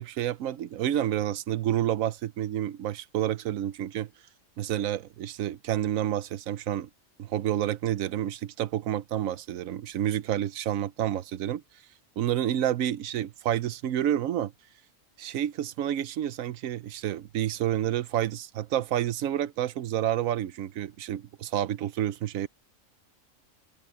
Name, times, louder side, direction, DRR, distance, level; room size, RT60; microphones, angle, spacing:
voice 1, 0.0-4.1 4.6-6.9 7.2-11.6 12.2-14.5 15.2-22.5, right 11 dB, 85° right, 1.1 m, -29 dB
open air
omnidirectional pair, 1.4 m